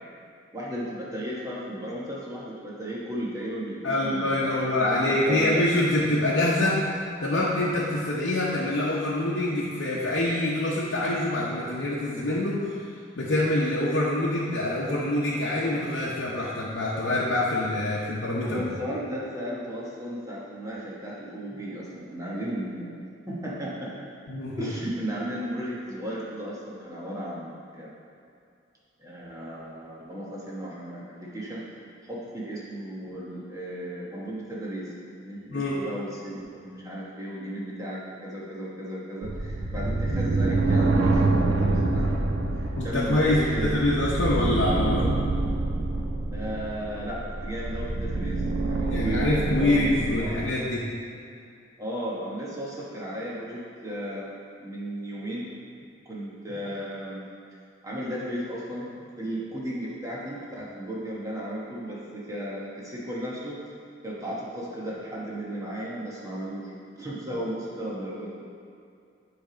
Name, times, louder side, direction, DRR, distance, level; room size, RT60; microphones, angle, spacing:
voice 1, 0.5-5.6 18.4-23.0 23.3-24.0 24.6-27.9 29.0-31.6 32.0-42.2 42.6-43.9 46.3-50.5 51.8-54.3 54.6-55.5 56.0-57.2 57.8-63.6 64.0-66.7 67.0-68.4, equal, 20° right, -6 dB, 1.2 m, -35 dB
voice 2, 3.8-6.8 7.2-12.7 13.2-18.7 24.3-24.7 35.5-35.8 42.8-45.1 48.8-50.9, left 1 dB, 80° left, -7 dB, 0.8 m, -25 dB
sound 1, 39.2-50.5, right 2 dB, 75° right, 0.6 m, -26 dB
7.1 x 3.4 x 5.0 m, 2.5 s
head